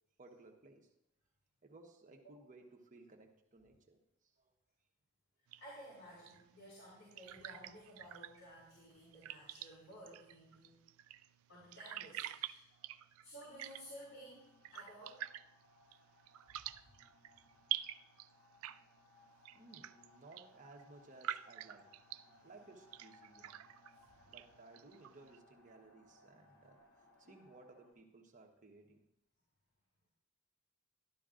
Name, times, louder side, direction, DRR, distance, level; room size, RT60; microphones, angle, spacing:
voice 1, 0.2-0.9 1.6-4.5 12.7-13.1 19.5-23.6 24.3-29.0, right 2 dB, 35° right, 2 dB, 1.1 m, -60 dB
sound 1, 5.5-25.4, right 12 dB, 65° right, 0.3 m, -49 dB
voice 2, 5.6-10.8 11.5-12.7 13.2-15.2 19.1-19.3, equal, 70° left, -8 dB, 4.2 m, -55 dB
sound 2, 13.3-27.9, left 2 dB, 45° left, 1.4 m, -67 dB
12.0 x 12.0 x 2.5 m, 0.86 s
head